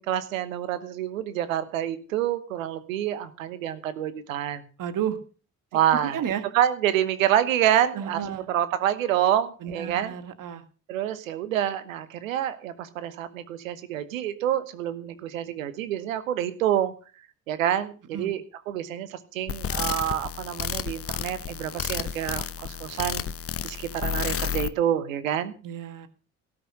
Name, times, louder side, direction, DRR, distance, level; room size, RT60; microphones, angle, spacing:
voice 1, 0.0-4.6 5.7-6.2 6.5-10.1 10.9-16.9 17.5-23.2 23.6-25.5, right 11 dB, 80° right, 13 dB, 1.1 m, -27 dB
voice 2, 4.8-5.2 5.9-6.4 7.9-8.5 9.6-10.6 18.1-18.4 25.6-26.1, right 9 dB, 50° right, 11 dB, 1.7 m, -32 dB
sound 1, 19.5-24.7, left 8 dB, 35° left, 0.9 m, -31 dB
17.5 x 5.9 x 7.7 m, 0.37 s
figure-of-eight pair, 45°, 40 cm